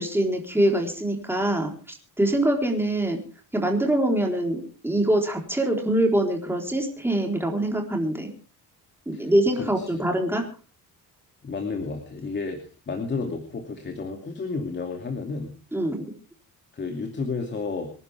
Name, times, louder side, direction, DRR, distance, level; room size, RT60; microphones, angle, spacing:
voice 1, 0.0-3.2 3.5-8.3 9.1-10.4 15.7-16.0, right 1 dB, 5° right, 2 dB, 3.9 m, -24 dB
voice 2, 9.6-10.1 11.4-15.5 16.7-17.9, left 4 dB, 30° left, 3 dB, 2.6 m, -32 dB
26.0 x 11.0 x 3.5 m, 0.35 s
cardioid pair, 150°, 37 cm